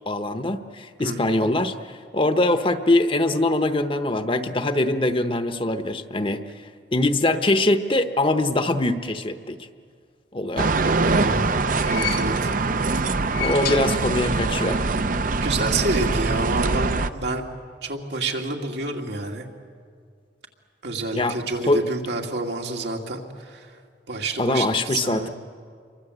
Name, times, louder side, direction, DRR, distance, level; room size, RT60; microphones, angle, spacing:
voice 1, 0.1-1.7 2.1-6.4 6.9-9.6 10.3-10.7 12.7-12.8 13.4-14.8 21.1-21.8 24.4-25.3, left 2 dB, 30° left, 9 dB, 1.0 m, -23 dB
voice 2, 1.0-1.4 10.9-11.5 11.8-12.5 15.4-17.4 17.8-19.5 20.8-23.7 24.1-25.3, right 2 dB, 75° right, 2 dB, 2.5 m, -28 dB
sound 1, 10.6-17.1, right 3 dB, 50° right, 0.7 m, -23 dB
sound 2, 11.0-12.7 13.2-14.6 14.8-14.9 16.0-16.1, left 12 dB, 60° left, 1.4 m, -34 dB
28.0 x 23.5 x 8.1 m, 2.1 s
head